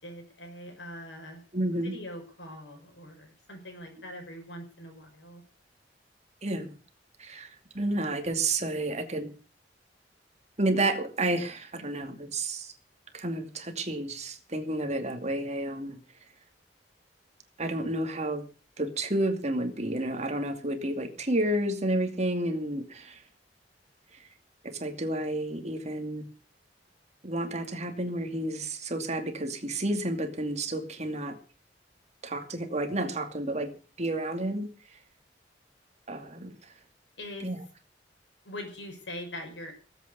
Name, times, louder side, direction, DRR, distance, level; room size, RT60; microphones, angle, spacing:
voice 1, 0.0-1.4 1.7-5.4 37.2-37.5 38.4-39.7, left 1 dB, 90° left, 3 dB, 6.5 m, -42 dB
voice 2, 1.5-1.9 6.4-6.8 7.2-7.5 7.7-9.3 10.6-12.7 13.1-16.0 17.6-18.5 18.8-23.2 24.6-26.3 27.2-31.4 32.2-35.0 36.1-36.7 37.4-37.6, right 1 dB, 40° right, 6 dB, 2.5 m, -31 dB
18.0 x 8.6 x 6.9 m, 0.39 s
head